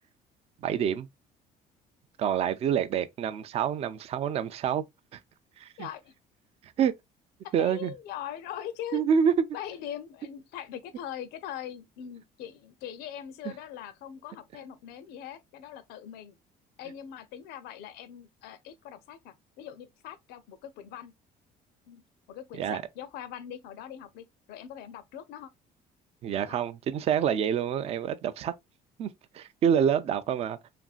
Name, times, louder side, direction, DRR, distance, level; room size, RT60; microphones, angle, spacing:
voice 1, 0.6-1.1 2.2-4.9 5.1-5.2 5.6-5.9 6.8-6.9 7.5-7.9 8.9-9.3 22.5-22.8 26.2-28.5 29.0-29.1 29.3-30.6, right 8 dB, 40° right, 0.4 m, -27 dB
voice 2, 5.8-6.1 7.4-9.0 9.5-16.4 16.8-21.1 21.9-22.0 22.3-25.5 26.5-26.6, left 10 dB, 85° left, 0.5 m, -41 dB
3.0 x 2.5 x 2.4 m
cardioid pair, 150°, 16 cm